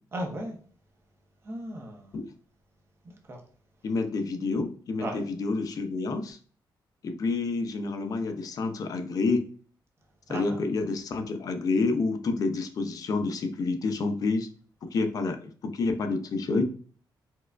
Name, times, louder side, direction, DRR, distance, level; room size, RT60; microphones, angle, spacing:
voice 1, 0.1-0.6 1.4-2.1 3.3-3.4 5.0-5.2 10.3-10.6, right 1 dB, 30° right, 1 dB, 0.7 m, -35 dB
voice 2, 3.8-6.4 7.0-9.5 10.3-14.5 14.8-16.6, left 3 dB, 50° left, 7 dB, 0.4 m, -28 dB
4.3 x 2.3 x 2.3 m, 0.44 s
wide cardioid pair, 150°, 8 cm